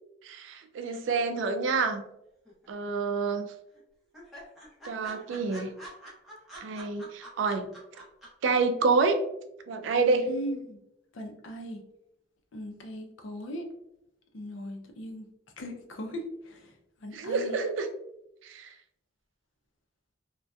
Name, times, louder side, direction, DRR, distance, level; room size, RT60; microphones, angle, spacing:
voice 1, 0.2-2.0 2.7-3.5 4.9-5.7 6.6-7.7 8.4-9.2 9.7-10.3 17.1-17.9 18.4-18.7, right 4 dB, 75° right, 6 dB, 0.3 m, -28 dB
sound 1, 2.5-3.1 3.4-3.5 3.8-3.9 4.1-8.5 8.8-8.9, right 1 dB, ahead, 0.7 m, -46 dB
voice 2, 10.3-10.8 11.1-11.8 12.5-13.6 14.3-15.3 15.6-16.7 17.0-17.6, equal, 80° left, 3 dB, 0.5 m, -38 dB
2.6 x 2.1 x 2.2 m, 0.81 s
head